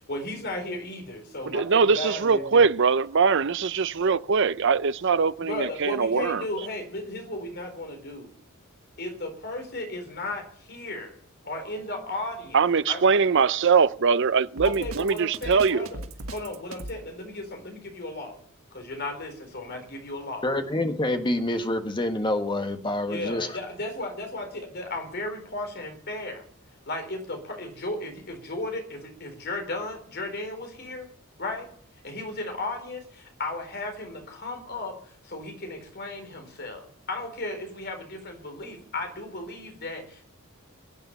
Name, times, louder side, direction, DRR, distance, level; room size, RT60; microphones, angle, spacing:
voice 1, 0.1-2.7 5.4-8.3 9.0-11.1 11.5-12.6 12.9-13.0 14.6-16.0 16.3-18.4 18.7-20.5 23.1-26.4 26.9-31.1 31.4-31.7 32.0-40.3, left 2 dB, 50° left, 4.0 m, -35 dB
voice 2, 1.5-6.4 12.5-15.9, right 5 dB, 60° right, 0.6 m, -22 dB
Drum kit, 14.6-17.0, right 1 dB, 80° right, 1.9 m, -37 dB
voice 3, 20.4-23.6, left 1 dB, 20° left, 1.5 m, -27 dB
22.0 x 8.9 x 7.1 m
head